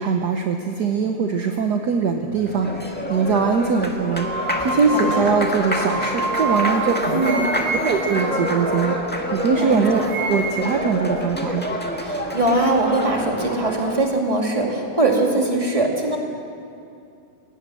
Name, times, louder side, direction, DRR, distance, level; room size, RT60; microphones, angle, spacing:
voice 1, 0.0-4.3 4.6-7.2 7.8-9.0 9.3-11.7, right 5 dB, 55° right, 4 dB, 1.4 m, -22 dB
Applause, 2.2-14.1, equal, 5° left, 1.5 m, -27 dB
sound 1, 4.2-9.4 9.8-10.8, right 2 dB, 85° right, 3.0 m, -29 dB
voice 2, 4.9-5.2 7.1-7.5 9.6-10.0 12.0-16.2, right 2 dB, 15° right, 0 dB, 2.4 m, -21 dB
19.5 x 18.0 x 7.6 m, 2.5 s
omnidirectional pair, 2.3 m